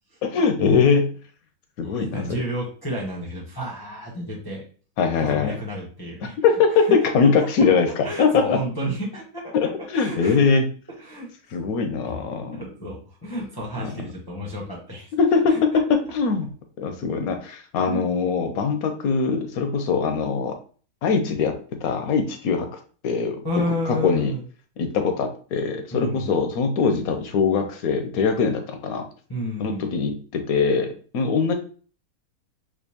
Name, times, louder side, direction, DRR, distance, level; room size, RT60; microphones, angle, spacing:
voice 1, 0.2-1.1 1.8-2.4 5.0-5.6 6.4-8.6 9.5-10.6 11.5-12.6 13.8-13.9 15.2-16.5 16.8-20.6 21.0-22.7 23.0-24.3 24.8-29.1 29.6-31.5, left 5 dB, 75° left, 6 dB, 1.0 m, -22 dB
voice 2, 1.8-4.6 5.2-6.4 6.7-7.5 8.0-10.4 11.0-11.3 12.5-15.8 17.8-18.0 23.4-24.4 25.9-26.3 29.3-29.9, equal, 20° left, -4 dB, 0.6 m, -31 dB
4.4 x 2.5 x 2.8 m, 0.41 s
omnidirectional pair, 1.7 m